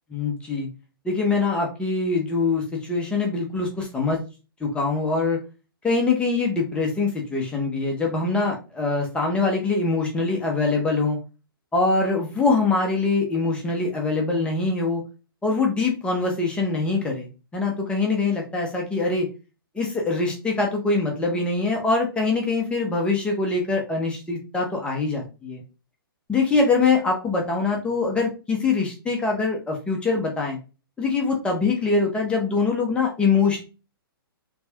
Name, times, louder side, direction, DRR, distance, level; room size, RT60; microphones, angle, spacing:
voice 1, 0.1-0.7 1.0-4.2 4.6-5.4 5.8-11.2 11.7-15.0 15.4-19.3 19.7-25.6 26.3-30.6 31.0-33.6, left 3 dB, 10° left, 0 dB, 0.9 m, -23 dB
3.4 x 2.4 x 3.5 m, 0.31 s
hypercardioid pair, 135°, 13 cm